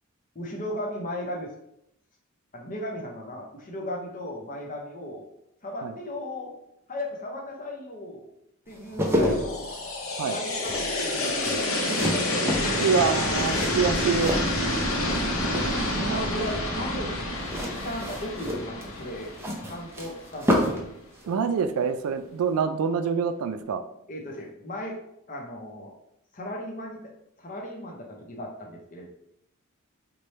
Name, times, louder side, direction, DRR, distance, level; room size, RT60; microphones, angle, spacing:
voice 1, 0.3-1.5 2.5-5.2 5.6-6.5 6.9-8.3 8.7-9.7 10.3-11.5 11.9-12.3 15.0-15.5 15.9-17.2 17.6-19.3 19.6-20.9 24.1-25.0 25.3-25.9 26.3-27.1 27.4-29.1, left 1 dB, 40° left, 0 dB, 0.7 m, -36 dB
sound 1, 8.7-15.2 15.5-16.1 17.4-20.9 21.2-21.3, equal, 10° right, 0.5 m, -30 dB
sound 2, 9.2-20.2, left 1 dB, 65° left, 0.7 m, -28 dB
voice 2, 12.8-14.4 16.1-16.3 21.3-23.8, right 6 dB, 80° right, 10 dB, 0.3 m, -26 dB
3.2 x 2.2 x 4.0 m, 0.78 s
head